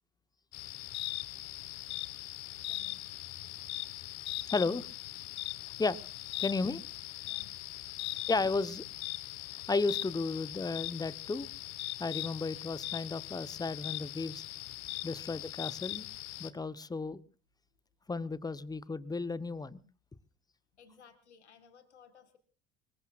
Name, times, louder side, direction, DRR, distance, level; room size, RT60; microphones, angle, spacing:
sound 1, 0.5-16.5, left 17 dB, 55° left, 1.2 m, -40 dB
voice 1, 2.7-3.0 7.2-7.9 20.7-22.4, left 6 dB, 85° left, 1.6 m, -60 dB
voice 2, 4.5-4.9 5.8-6.0 6.4-6.8 8.3-8.8 9.7-11.5 12.0-14.4 15.0-16.1 16.4-17.2 18.1-19.8, left 3 dB, 10° left, 0.9 m, -33 dB
25.0 x 22.0 x 2.4 m
hypercardioid pair, 65°, 33 cm